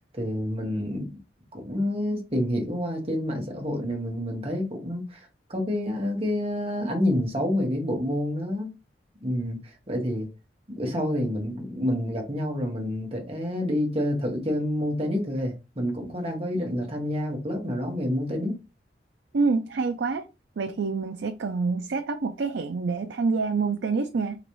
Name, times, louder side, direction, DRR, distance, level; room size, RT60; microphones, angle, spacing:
voice 1, 0.1-1.1 1.5-8.7 9.2-10.3 10.7-18.6, left 1 dB, 30° right, 1.2 m, -28 dB
voice 2, 19.3-20.2 20.6-24.4, right 4 dB, 70° right, 0.4 m, -27 dB
3.9 x 3.1 x 3.0 m
head